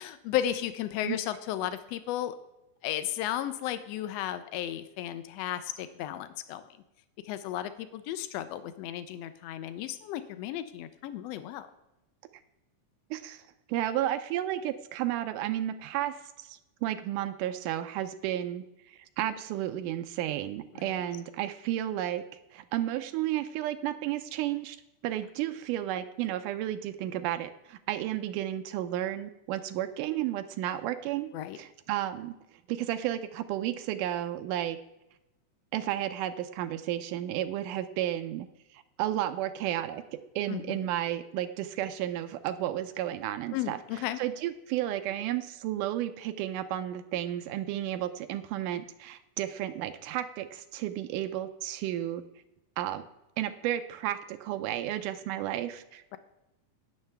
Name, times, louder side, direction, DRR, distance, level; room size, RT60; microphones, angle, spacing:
voice 1, 0.0-2.3 2.8-6.7 7.2-11.7 20.7-20.9 31.3-31.6 40.5-40.9 43.5-44.2, left 12 dB, 85° left, 11 dB, 1.4 m, -34 dB
voice 2, 13.1-13.4 13.7-22.2 22.5-24.8 25.0-31.3 31.6-32.3 32.7-34.8 35.7-38.5 38.7-40.0 40.4-52.2 52.8-53.1 53.4-56.2, right 12 dB, 90° right, 8 dB, 2.2 m, -32 dB
18.0 x 6.5 x 3.4 m, 0.93 s
omnidirectional pair, 3.7 m